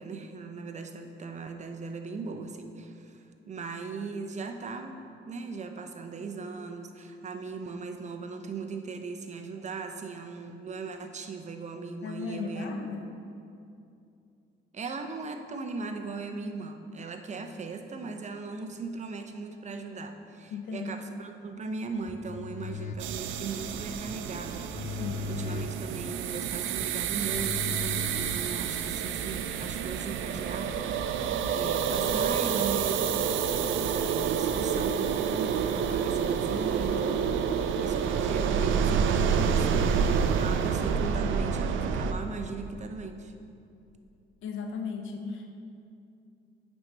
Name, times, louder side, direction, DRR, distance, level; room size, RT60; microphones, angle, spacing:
voice 1, 0.0-5.0 5.3-12.7 14.7-24.7 25.3-33.0 33.8-43.3, right 4 dB, 35° right, 6 dB, 0.6 m, -38 dB
voice 2, 12.0-13.1 20.5-20.9 25.0-25.3 44.4-45.6, left 5 dB, 85° left, 4 dB, 0.8 m, -36 dB
sound 1, 22.0-28.9, left 4 dB, 40° left, 0.4 m, -39 dB
sound 2, 23.0-42.1, right 7 dB, 80° right, 0.4 m, -28 dB
8.9 x 5.4 x 3.3 m, 2.6 s
cardioid pair, 90°, 20 cm